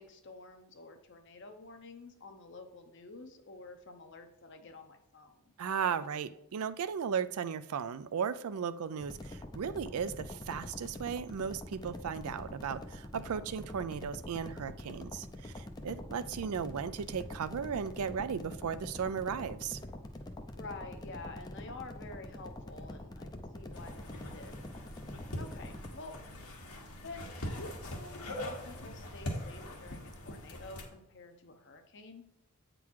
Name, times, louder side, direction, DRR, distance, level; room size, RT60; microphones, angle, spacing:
voice 1, 0.0-5.6 20.5-24.6 25.4-26.2 27.0-32.3, left 3 dB, 55° left, 0.8 m, -49 dB
voice 2, 5.6-19.8, right 7 dB, 75° right, 0.4 m, -36 dB
sound 1, 9.0-25.9, left 1 dB, 20° left, 0.4 m, -45 dB
sound 2, 23.7-30.8, left 1 dB, 80° left, 1.5 m, -42 dB
8.5 x 3.8 x 4.6 m
head